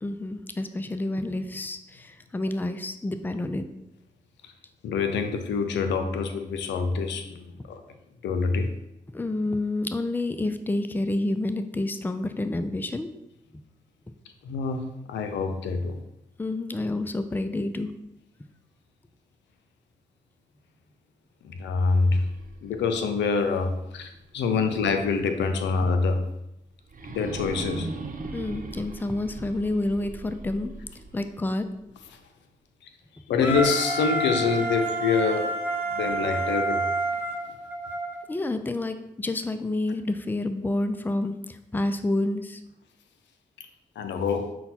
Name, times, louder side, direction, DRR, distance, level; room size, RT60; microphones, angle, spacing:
voice 1, 0.0-3.6 9.1-13.1 16.4-17.9 28.3-30.7 31.1-31.7 38.3-42.6, left 2 dB, 10° left, 9 dB, 0.4 m, -29 dB
voice 2, 4.8-7.8 8.2-8.7 14.4-16.0 21.4-22.3 22.6-26.2 27.1-27.9 33.3-35.6 35.9-36.8 43.6-43.7 44.0-44.5, left 4 dB, 80° left, 7 dB, 0.5 m, -26 dB
sound 1, 22.0-24.9 25.4-25.5 26.9-31.9, right 3 dB, 50° right, 0.8 m, -40 dB
Wind instrument woodwind instrument, 33.4-38.2, right 2 dB, 10° right, 0.9 m, -28 dB
5.7 x 2.2 x 4.1 m, 0.86 s
supercardioid pair, 40°, 18 cm